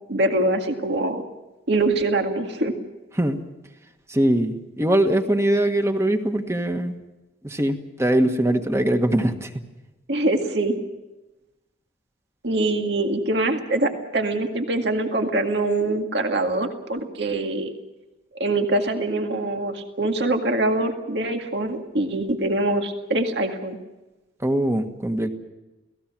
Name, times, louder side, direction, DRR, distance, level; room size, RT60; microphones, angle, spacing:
voice 1, 0.1-1.2 1.7-2.7 10.1-10.8 12.4-17.7 18.3-23.8, right 2 dB, 65° right, 4 dB, 2.0 m, -24 dB
voice 2, 4.1-6.9 7.4-9.6 24.4-25.3, right 1 dB, 15° right, 6 dB, 1.6 m, -22 dB
29.5 x 18.5 x 6.2 m, 1.0 s
head